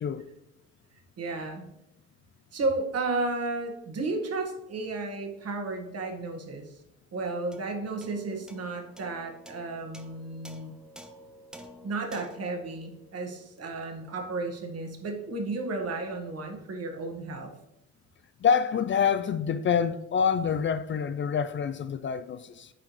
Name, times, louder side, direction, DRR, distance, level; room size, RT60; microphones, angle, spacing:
voice 1, 1.2-1.6 2.5-6.7 7.1-10.7 11.8-17.5, right 3 dB, 55° right, 1.6 m, -33 dB
sound 1, 7.5-14.1, equal, 5° right, 0.8 m, -51 dB
voice 2, 18.4-22.7, left 7 dB, 40° left, 0.4 m, -26 dB
8.8 x 4.9 x 3.1 m
cardioid pair, 90°, 30 cm